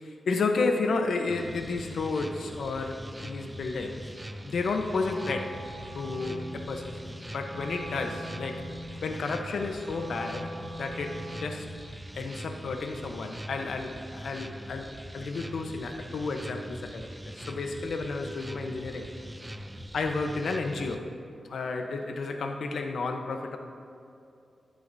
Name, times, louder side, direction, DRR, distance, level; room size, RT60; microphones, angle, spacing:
voice 1, 0.3-4.1 4.4-5.6 5.9-8.7 9.0-11.7 12.1-17.0 17.4-19.1 19.9-21.1 21.4-23.6, left 3 dB, 80° left, 4 dB, 0.9 m, -32 dB
sound 1, 1.3-21.0, equal, 10° right, 0.6 m, -42 dB
Wind instrument woodwind instrument, 5.0-11.7, equal, 30° right, 1.1 m, -43 dB
13.5 x 11.5 x 2.7 m, 2.6 s
cardioid pair, 75°, 0 cm